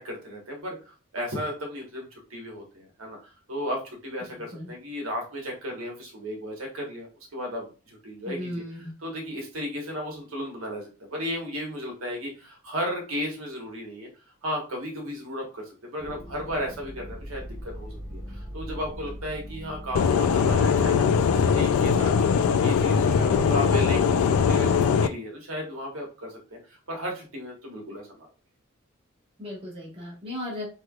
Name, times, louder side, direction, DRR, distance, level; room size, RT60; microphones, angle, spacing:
voice 1, 0.0-7.1 7.3-14.1 14.4-21.3 21.5-26.6 26.9-28.3, equal, 80° right, 0 dB, 1.2 m, -34 dB
voice 2, 8.2-8.9 29.4-30.7, left 1 dB, 25° right, -2 dB, 1.2 m, -36 dB
sound 1, 16.0-24.7, equal, 20° left, 0.5 m, -40 dB
sound 2, 19.9-25.1, left 6 dB, 85° left, 0.3 m, -21 dB
3.2 x 3.1 x 2.3 m, 0.35 s
head